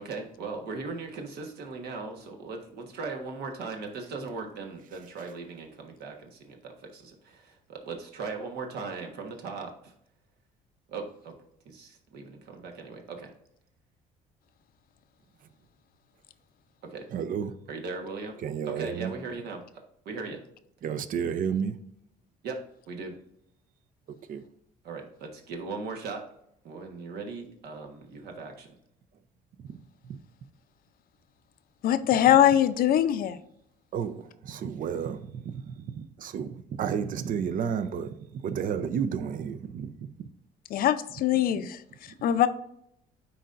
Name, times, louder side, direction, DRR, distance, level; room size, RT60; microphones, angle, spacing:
voice 1, 0.0-9.9 10.9-11.4 11.6-13.3 16.8-17.1 17.7-18.4 18.7-19.6 20.0-20.4 22.4-23.2 24.8-26.2 26.6-28.7, right 4 dB, 70° right, 1.3 m, -38 dB
voice 2, 17.1-17.6 18.4-19.1 20.8-21.8 24.3-24.5 29.6-29.8 30.0-30.2 33.9-40.1 41.4-41.5, right 7 dB, 55° right, 0.6 m, -32 dB
voice 3, 31.8-33.4 40.7-41.8 42.2-42.5, left 11 dB, 60° left, 0.6 m, -22 dB
9.8 x 4.0 x 2.5 m
cardioid pair, 110°, 17 cm